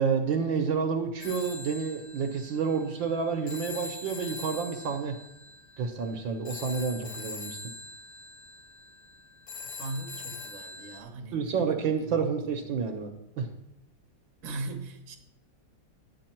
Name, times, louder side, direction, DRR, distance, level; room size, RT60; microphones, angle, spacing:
voice 1, 0.0-5.2 5.8-7.6 11.3-13.1 13.4-13.5, right 5 dB, 70° right, 5 dB, 1.6 m, -29 dB
Telephone, 1.2-11.0, left 3 dB, 45° left, 1.7 m, -43 dB
voice 2, 9.8-11.5 12.0-12.2 14.4-15.2, right 2 dB, 45° right, 3 dB, 1.3 m, -38 dB
10.5 x 8.7 x 4.4 m, 0.84 s
omnidirectional pair, 2.3 m